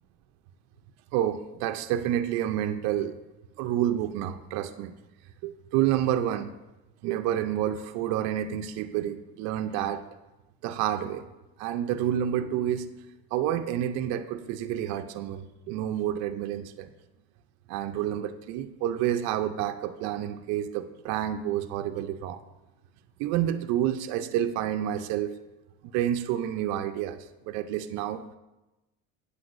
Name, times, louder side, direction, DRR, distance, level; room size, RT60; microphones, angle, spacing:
voice 1, 1.1-3.2 3.6-4.9 5.4-6.5 7.0-10.0 10.6-11.2 11.6-12.9 13.3-16.9 17.7-22.4 23.2-25.3 25.9-28.4, right 11 dB, 65° right, 8 dB, 0.5 m, -29 dB
8.1 x 7.9 x 2.5 m, 1.0 s
cardioid pair, 130°, 29 cm